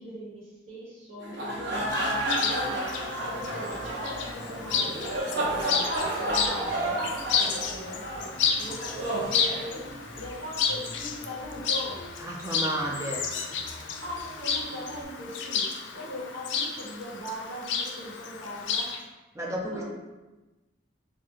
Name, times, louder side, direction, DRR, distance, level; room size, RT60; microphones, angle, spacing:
voice 1, 0.0-8.3 8.6-12.1 14.0-18.9 19.6-19.8, equal, 90° right, -9 dB, 1.2 m, -40 dB
sound 1, 1.2-10.2, right 1 dB, 55° right, 0.7 m, -31 dB
sound 2, 1.3-15.0, left 1 dB, 20° left, 0.7 m, -46 dB
Chirp tweet, 1.9-19.0, left 6 dB, 60° left, 0.3 m, -32 dB
voice 2, 12.2-13.3 19.3-19.8, right 1 dB, 15° right, -2 dB, 0.3 m, -32 dB
2.7 x 2.4 x 3.8 m, 1.1 s
head